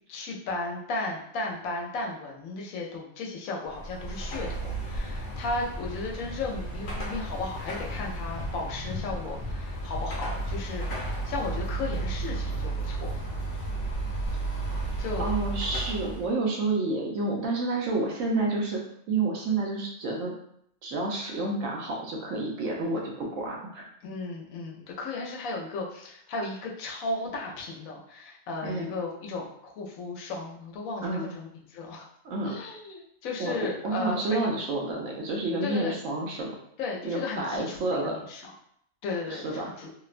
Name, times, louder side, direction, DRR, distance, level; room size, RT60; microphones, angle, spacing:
voice 1, 0.1-13.2 15.0-15.2 24.0-32.1 32.4-34.5 35.6-36.0 36.8-38.4 39.0-39.9, left 3 dB, 90° left, -1 dB, 1.0 m, -35 dB
Car passing by / Traffic noise roadway noise / Engine, 3.7-16.3, right 2 dB, 65° left, 0.9 m, -33 dB
voice 2, 15.2-18.8 19.1-20.3 20.8-23.9 28.6-28.9 31.0-31.3 32.2-32.5 33.4-36.6 37.0-38.1 39.3-39.7, right 2 dB, 70° right, -1 dB, 0.9 m, -29 dB
2.8 x 2.1 x 2.4 m, 0.71 s
omnidirectional pair, 1.4 m